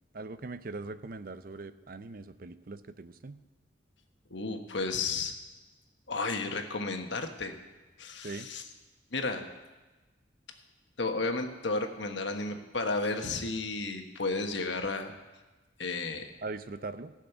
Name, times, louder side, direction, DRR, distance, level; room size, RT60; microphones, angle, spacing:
voice 1, 0.1-3.4 8.2-8.5 16.4-17.1, right 3 dB, 50° right, 12 dB, 0.6 m, -41 dB
voice 2, 4.3-5.3 6.1-7.5 8.0-8.6 9.1-9.4 11.0-15.1 15.8-16.3, left 3 dB, 75° left, 5 dB, 1.3 m, -33 dB
15.5 x 6.5 x 8.0 m, 1.2 s
head